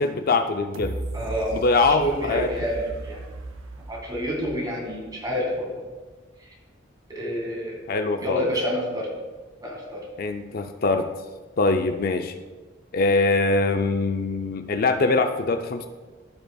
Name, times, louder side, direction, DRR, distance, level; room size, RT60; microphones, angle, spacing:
voice 1, 0.0-1.0 1.5-2.5 7.9-8.5 10.2-11.1 11.6-12.3 12.9-15.9, left 3 dB, 50° left, 7 dB, 0.4 m, -23 dB
sound 1, 0.7-5.6 6.1-6.2, right 2 dB, 85° right, 0.6 m, -37 dB
voice 2, 1.1-3.2 3.9-5.9 7.1-7.8 8.2-9.1 9.6-10.0, equal, 20° right, -2 dB, 2.0 m, -28 dB
15.5 x 5.3 x 2.3 m, 1.3 s
head